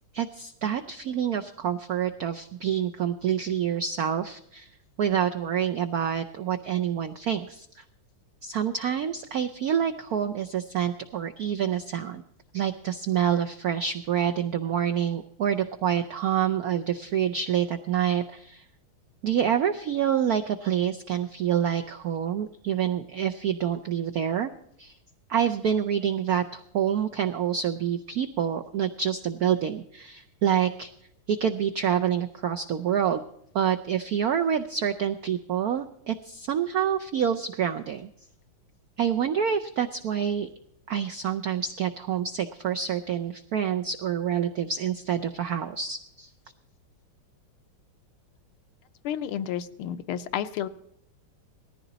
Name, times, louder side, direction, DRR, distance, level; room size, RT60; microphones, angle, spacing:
voice 1, 0.1-4.7 5.0-7.8 8.4-12.2 12.5-18.6 19.2-24.5 24.8-25.0 25.3-30.9 31.3-33.2 33.5-38.1 39.0-40.5 40.9-46.3, right 9 dB, 75° right, 6 dB, 0.8 m, -27 dB
voice 2, 49.0-50.7, left 10 dB, 85° left, 11 dB, 1.7 m, -31 dB
18.5 x 14.5 x 4.0 m, 0.76 s
omnidirectional pair, 2.3 m